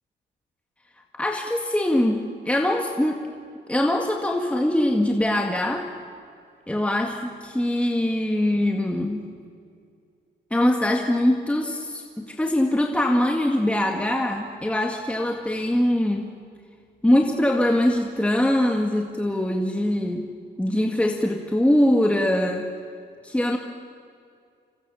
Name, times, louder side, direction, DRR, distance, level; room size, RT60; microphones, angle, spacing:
voice 1, 1.1-3.2 3.7-5.9 6.7-9.2 10.5-16.3 17.0-20.3 20.6-22.7 23.2-23.6, left 1 dB, 5° left, 2 dB, 2.1 m, -22 dB
27.0 x 26.5 x 7.3 m, 2.3 s
cardioid pair, 90°, 20 cm